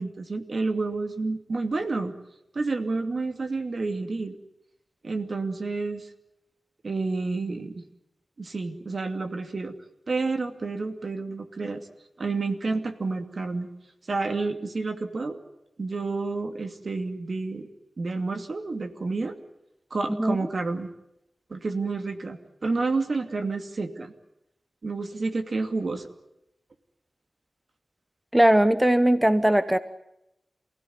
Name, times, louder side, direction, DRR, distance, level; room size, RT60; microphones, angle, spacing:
voice 1, 0.0-2.1 2.5-4.4 5.0-6.1 6.8-7.8 8.4-9.8 10.1-11.9 12.2-13.7 14.1-15.4 15.8-17.7 18.0-19.4 19.9-20.9 21.5-24.1 24.8-26.1, right 3 dB, 60° right, 6 dB, 2.5 m, -29 dB
voice 2, 28.3-29.8, right 1 dB, 10° right, 12 dB, 1.0 m, -19 dB
28.0 x 17.0 x 9.6 m, 0.85 s
wide cardioid pair, 65°, 0 cm